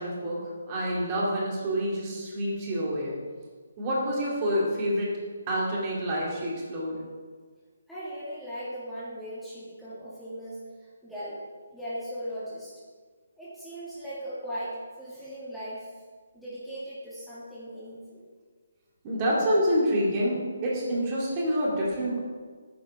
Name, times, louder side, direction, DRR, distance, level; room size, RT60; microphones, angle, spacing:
voice 1, 0.0-3.1 3.8-5.1 5.5-7.0 19.0-22.2, equal, 30° right, -5 dB, 2.7 m, -27 dB
voice 2, 7.9-11.4 11.7-12.7 13.4-15.9 16.3-18.2, equal, 5° left, -11 dB, 2.1 m, -38 dB
9.1 x 5.5 x 4.8 m, 1.5 s
figure-of-eight pair, 145°, 0 cm